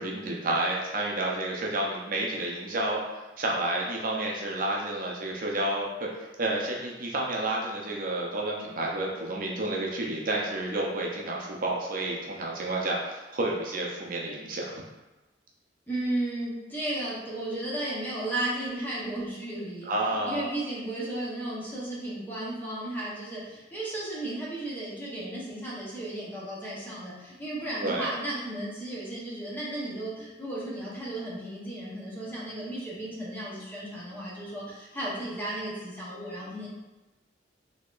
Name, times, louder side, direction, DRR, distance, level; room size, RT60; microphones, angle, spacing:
voice 1, 0.0-14.8 19.9-20.5 27.8-28.1, right 2 dB, 50° right, -2 dB, 0.5 m, -30 dB
voice 2, 15.9-19.9 20.2-36.7, right 1 dB, 10° left, -7 dB, 0.9 m, -34 dB
4.0 x 2.8 x 2.4 m, 1.1 s
head